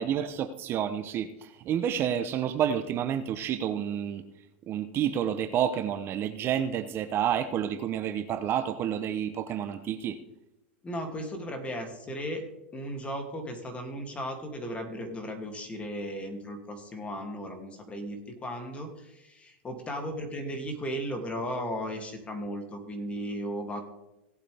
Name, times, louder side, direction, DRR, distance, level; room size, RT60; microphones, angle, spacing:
voice 1, 0.0-4.2 4.7-10.2, right 9 dB, 35° right, 11 dB, 0.8 m, -29 dB
voice 2, 10.8-23.8, equal, 20° left, 4 dB, 2.6 m, -36 dB
17.5 x 8.3 x 3.5 m, 0.93 s
hypercardioid pair, 110°, 6 cm